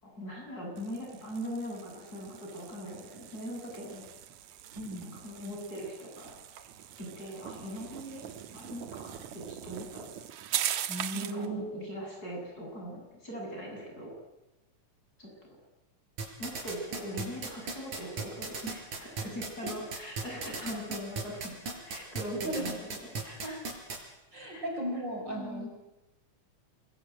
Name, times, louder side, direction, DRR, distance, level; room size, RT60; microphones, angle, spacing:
voice 1, 0.0-4.1 5.0-6.3 7.0-8.2 8.5-10.1 10.5-10.7 11.1-14.1 15.2-15.3 16.4-21.6 21.8-22.8 23.2-23.6 24.5-24.6 25.3-25.7, equal, 30° left, 0 dB, 8.2 m, -41 dB
sound 1, 0.8-11.5, right 11 dB, 75° right, 2.5 m, -41 dB
voice 2, 4.7-5.1 10.9-11.8 22.3-22.6 24.3-25.7, right 1 dB, 35° right, 2 dB, 5.8 m, -36 dB
sound 2, 16.2-24.0, right 4 dB, 90° right, 6.5 m, -35 dB
28.5 x 22.5 x 9.1 m, 1.0 s
omnidirectional pair, 3.4 m